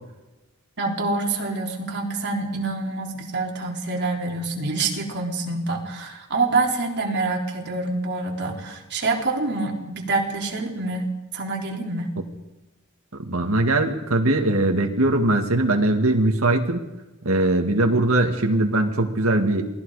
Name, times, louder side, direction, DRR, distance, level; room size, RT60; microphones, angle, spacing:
voice 1, 0.8-11.1 11.3-12.2, right 3 dB, 55° right, 0 dB, 3.9 m, -26 dB
voice 2, 13.2-16.8 17.2-19.7, right 2 dB, 70° right, 3 dB, 2.1 m, -21 dB
28.0 x 19.5 x 5.0 m, 1.0 s
head